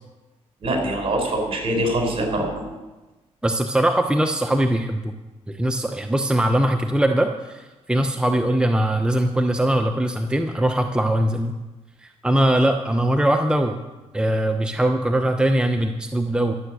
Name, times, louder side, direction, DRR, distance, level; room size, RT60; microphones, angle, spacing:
voice 1, 0.6-2.6, right 1 dB, 50° right, 2 dB, 5.0 m, -23 dB
voice 2, 3.4-5.1 5.5-11.5 12.0-13.8 14.1-16.5, right 1 dB, 5° right, 5 dB, 0.9 m, -21 dB
13.0 x 7.5 x 8.3 m, 1.1 s
cardioid pair, 75°, 13 cm